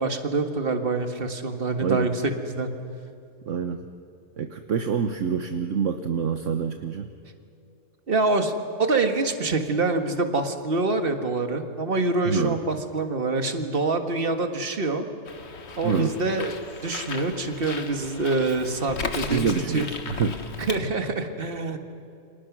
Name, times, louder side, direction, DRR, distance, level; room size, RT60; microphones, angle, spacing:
voice 1, 0.0-2.1 2.4-2.7 8.1-15.0 15.8-16.5 16.8-19.8 20.7-21.8, right 3 dB, 40° right, 7 dB, 1.9 m, -26 dB
voice 2, 1.8-2.1 3.5-3.8 4.4-7.1 12.2-12.6 15.8-16.2 19.3-20.4, right 6 dB, 60° right, 7 dB, 1.3 m, -26 dB
Bird, 15.2-20.8, left 4 dB, 50° left, 1.6 m, -36 dB
29.5 x 26.0 x 6.2 m, 2.6 s
omnidirectional pair, 1.5 m